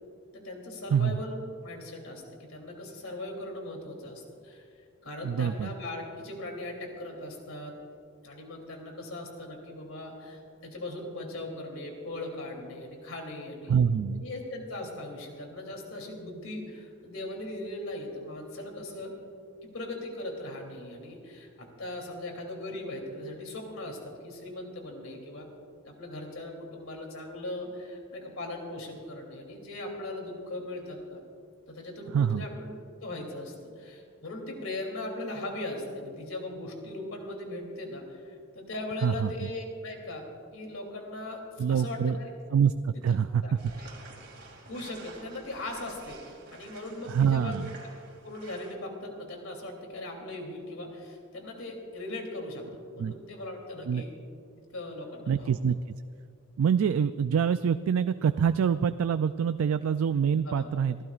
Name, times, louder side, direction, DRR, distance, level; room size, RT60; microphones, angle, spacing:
voice 1, 0.3-4.7 5.0-7.7 8.2-13.8 14.1-19.1 19.6-25.5 25.8-31.2 31.7-32.7 33.0-38.2 38.5-41.4 41.7-42.3 42.9-43.2 43.4-43.5 43.8-43.9 44.7-47.6 48.2-54.1 54.7-55.6 60.4-60.7, left 1 dB, 85° left, 1 dB, 3.0 m, -39 dB
voice 2, 0.9-1.2 5.2-5.7 13.7-14.2 32.1-32.4 39.0-39.5 41.6-42.2 42.5-43.4 47.1-47.7 53.0-53.1 53.9-54.0 55.3-55.8 56.6-61.0, right 7 dB, 80° right, 12 dB, 0.3 m, -25 dB
sound 1, 43.6-48.7, right 3 dB, 50° right, 2.5 m, -50 dB
27.0 x 15.0 x 2.5 m, 2.5 s
head